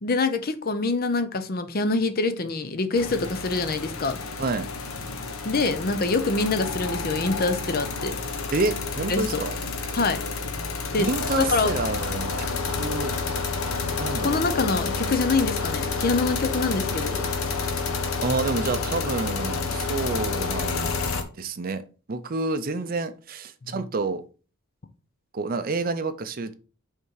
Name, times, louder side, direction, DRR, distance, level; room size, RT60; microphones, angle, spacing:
voice 1, 0.0-4.2 5.4-8.2 9.1-9.4 9.9-10.2 10.9-11.1 11.4-11.7 14.2-17.2 23.7-23.8, left 3 dB, 45° left, 0.6 m, -25 dB
sound 1, 2.9-21.2, left 4 dB, 75° left, 1.0 m, -29 dB
voice 2, 8.5-9.6 11.0-13.1 14.0-14.4 18.2-20.9 21.4-24.2 25.3-26.5, right 3 dB, 40° right, 0.5 m, -29 dB
5.4 x 3.7 x 4.7 m
head